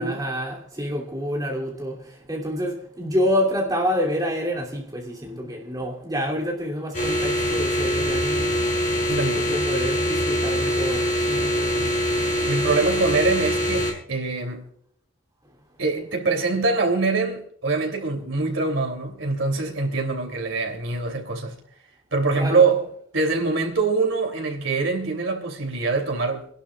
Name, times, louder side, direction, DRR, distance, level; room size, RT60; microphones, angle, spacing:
voice 1, 0.0-2.0 2.3-8.5 9.2-12.0 22.4-22.6, equal, 20° right, 2.8 m, -27 dB
sound 1, 6.9-13.9, equal, 40° left, 6.2 m, -23 dB
voice 2, 9.1-9.5 12.5-14.7 15.8-21.6 22.1-22.9 23.1-26.5, right 3 dB, 85° right, 3.0 m, -24 dB
28.0 x 11.5 x 2.4 m
head